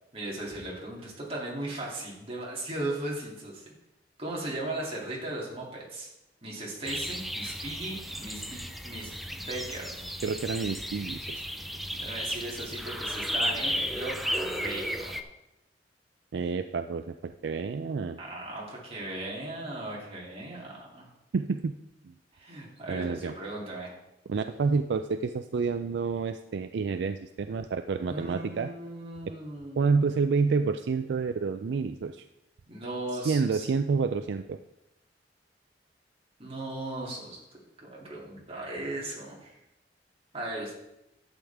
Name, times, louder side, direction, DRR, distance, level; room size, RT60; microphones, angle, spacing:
voice 1, 0.1-3.6 4.2-6.1 6.4-9.9 11.9-15.1 18.2-21.1 22.3-23.9 28.0-30.1 32.7-33.7 36.4-37.4 37.8-39.6 40.3-40.7, right 1 dB, 35° right, -4 dB, 2.8 m, -37 dB
sound 1, 6.9-15.2, equal, ahead, 0.5 m, -34 dB
voice 2, 10.2-11.4 16.3-17.1 17.4-18.2 21.3-21.7 22.0-22.1 22.9-23.3 24.3-28.7 29.8-32.2 33.2-34.6, right 4 dB, 70° right, 9 dB, 0.4 m, -28 dB
12.0 x 7.9 x 3.5 m, 0.90 s
head